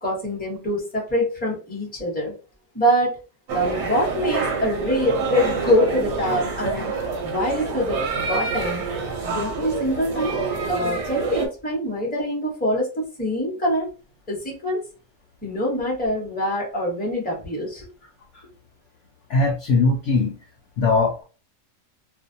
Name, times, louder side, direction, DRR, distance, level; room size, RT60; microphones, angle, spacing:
voice 1, 0.0-2.3 2.7-3.1 3.5-6.9 7.2-8.0 8.3-8.8 9.2-10.4 10.7-13.8 14.3-14.8 15.4-17.9, equal, 10° left, -3 dB, 0.8 m, -24 dB
sound 1, 3.5-11.5, right 4 dB, 60° right, 0.8 m, -27 dB
voice 2, 19.3-20.4 20.8-21.2, left 3 dB, 65° left, 0 dB, 0.7 m, -20 dB
2.5 x 2.1 x 2.6 m, 0.34 s
omnidirectional pair, 1.6 m